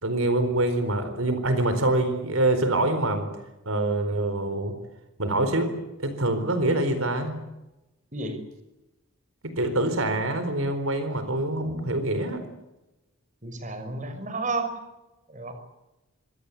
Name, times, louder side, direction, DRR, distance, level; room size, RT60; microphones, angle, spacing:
voice 1, 0.0-3.3 3.7-4.8 5.2-5.7 6.0-7.3 9.4-12.4, right 2 dB, 80° right, 9 dB, 4.3 m, -25 dB
voice 2, 13.4-14.8 15.3-15.5, right 3 dB, 35° right, 8 dB, 6.0 m, -31 dB
26.0 x 24.0 x 8.5 m, 0.98 s
head